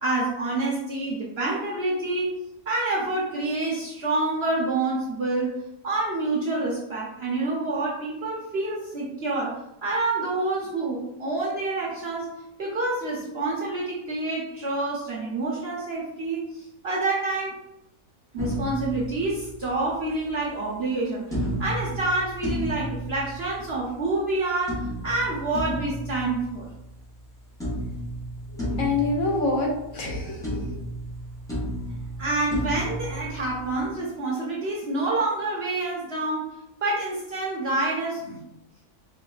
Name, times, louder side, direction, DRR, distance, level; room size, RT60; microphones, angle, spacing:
voice 1, 0.0-2.3 2.7-5.5 5.8-12.3 12.6-17.6 18.3-26.7 32.2-38.4, right 2 dB, 55° right, -5 dB, 0.7 m, -27 dB
sound 1, 18.4-19.9 21.3-23.9 24.7-27.2 27.6-30.2 30.4-33.9, equal, 5° left, 0.4 m, -33 dB
voice 2, 28.5-30.6, left 3 dB, 65° left, -2 dB, 0.9 m, -26 dB
4.4 x 2.1 x 2.3 m, 0.85 s
omnidirectional pair, 1.6 m